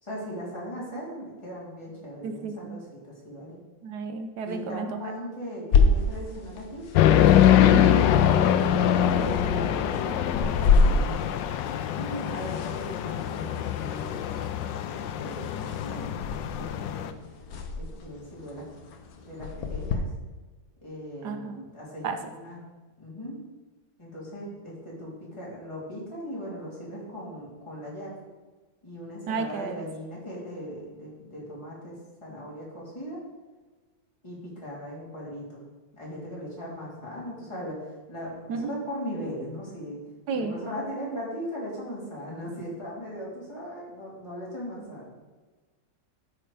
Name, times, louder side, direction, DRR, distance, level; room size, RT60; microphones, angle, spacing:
voice 1, 0.0-3.6 4.4-6.8 8.9-11.1 11.9-16.3 16.6-17.2 17.7-18.6 19.2-20.0 20.8-22.6 23.0-23.4 24.0-28.1 28.8-33.2 34.2-35.6 35.9-40.0 40.4-45.1, equal, 15° left, -6 dB, 3.2 m, -38 dB
voice 2, 2.2-2.8 3.8-4.9 7.7-8.0 21.2-21.6 22.0-22.2 29.3-29.8 38.5-38.7 40.3-40.6, right 5 dB, 70° right, 7 dB, 1.3 m, -32 dB
sound 1, 5.7-19.9, left 4 dB, 60° left, 1.3 m, -29 dB
sound 2, 7.0-17.1, left 10 dB, 90° left, 1.3 m, -23 dB
13.0 x 4.5 x 5.0 m, 1.3 s
omnidirectional pair, 1.9 m